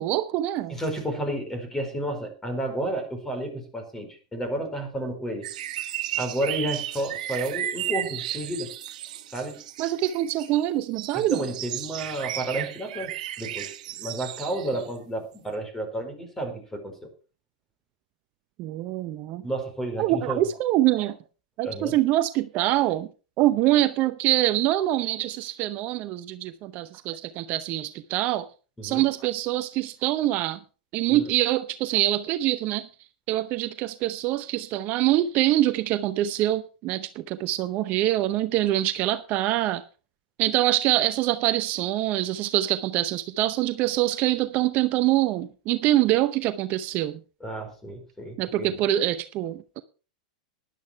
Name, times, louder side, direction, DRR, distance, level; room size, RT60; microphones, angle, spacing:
voice 1, 0.0-0.8 9.8-11.4 18.6-19.4 20.0-21.2 21.6-23.1 23.4-28.5 28.8-30.6 30.9-32.9 33.3-39.8 40.4-47.2 48.4-49.8, right 14 dB, 45° right, 0.7 m, -24 dB
voice 2, 0.7-5.5 6.1-8.7 9.3-9.6 11.1-17.1 19.4-20.5 21.6-21.9 28.8-29.0 31.1-31.2 47.4-48.8, right 1 dB, 10° left, 4.8 m, -31 dB
sound 1, 5.4-14.9 15.5-15.6, right 12 dB, 70° right, 1.5 m, -34 dB
12.5 x 11.0 x 4.6 m
hypercardioid pair, 120°, 4 cm